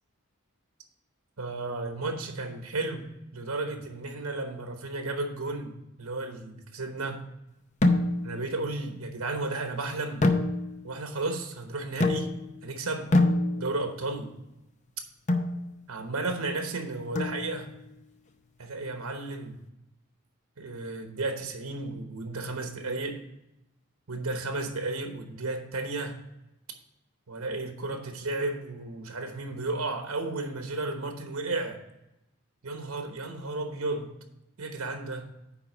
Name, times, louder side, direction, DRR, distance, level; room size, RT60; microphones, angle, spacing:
voice 1, 1.4-5.7 6.0-7.2 8.2-10.3 10.8-12.3 12.6-13.1 13.6-14.3 15.9-17.7 18.6-19.6 20.6-23.2 24.1-26.2 27.3-31.8 32.6-34.1 34.6-35.3, right 2 dB, 75° right, 5 dB, 1.1 m, -33 dB
sound 1, 7.8-8.4 10.2-10.9 12.0-12.6 13.1-13.9 15.3-15.6 17.1-17.8, left 2 dB, 35° left, 0.6 m, -25 dB
9.3 x 3.7 x 6.0 m, 0.89 s
head